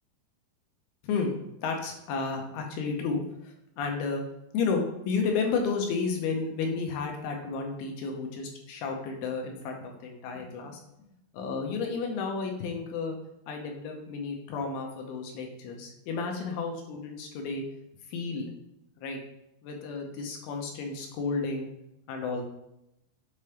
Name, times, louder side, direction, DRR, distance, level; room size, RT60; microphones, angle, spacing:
voice 1, 1.6-4.2 4.5-10.8 11.3-13.2 13.5-17.6 18.1-18.5 19.0-19.2 19.6-21.7 22.1-22.4, left 4 dB, 80° left, 2 dB, 2.7 m, -32 dB
6.8 x 4.3 x 3.4 m, 0.83 s
omnidirectional pair, 4.6 m